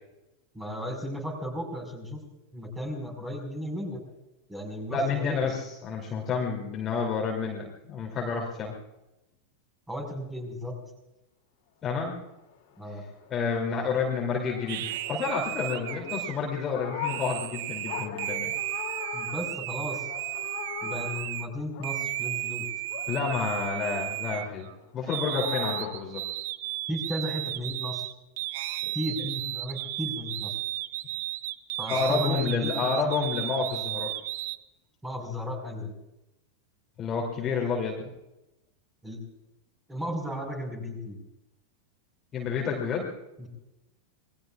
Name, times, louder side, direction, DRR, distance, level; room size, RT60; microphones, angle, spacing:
voice 1, 0.5-2.2 2.5-4.0 4.5-5.4 9.9-10.8 12.8-13.0 19.1-20.1 20.8-22.6 26.9-28.1 28.9-30.5 31.8-33.0 35.0-35.9 39.0-39.2 39.9-41.2 43.4-43.5, equal, 10° right, 2 dB, 5.1 m, -34 dB
voice 2, 4.9-8.7 11.8-12.2 13.3-18.5 23.1-24.7 24.9-26.2 31.9-34.1 37.0-38.1 42.3-43.1, left 5 dB, 25° left, -1 dB, 2.8 m, -29 dB
sound 1, 12.3-22.6 22.9-25.9, left 9 dB, 50° left, 3.0 m, -41 dB
sound 2, 14.7-21.5 21.8-24.7 25.1-34.6, right 15 dB, 50° right, 0.6 m, -34 dB
27.0 x 20.5 x 2.4 m, 0.93 s
figure-of-eight pair, 90°, 0 cm